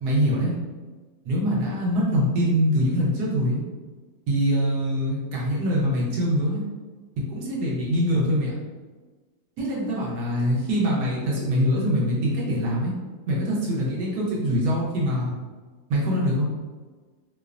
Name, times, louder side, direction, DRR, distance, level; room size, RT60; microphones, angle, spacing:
voice 1, 0.0-0.5 1.2-3.6 4.3-6.6 7.3-8.5 9.6-12.9 13.3-15.3 15.9-16.5, equal, 85° right, -5 dB, 1.3 m, -23 dB
3.0 x 2.0 x 2.4 m, 1.4 s
omnidirectional pair, 1.7 m